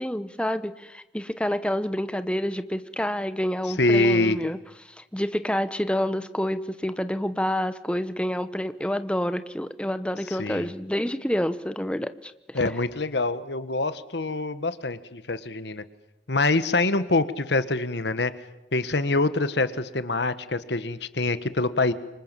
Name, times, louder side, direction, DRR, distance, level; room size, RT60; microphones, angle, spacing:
voice 1, 0.0-4.6 5.0-12.6, equal, 5° left, 12 dB, 1.0 m, -28 dB
voice 2, 3.7-4.4 10.3-10.7 12.5-15.8 16.3-18.3 18.7-21.9, left 2 dB, 70° left, 13 dB, 1.3 m, -25 dB
27.0 x 25.0 x 7.5 m, 0.95 s
head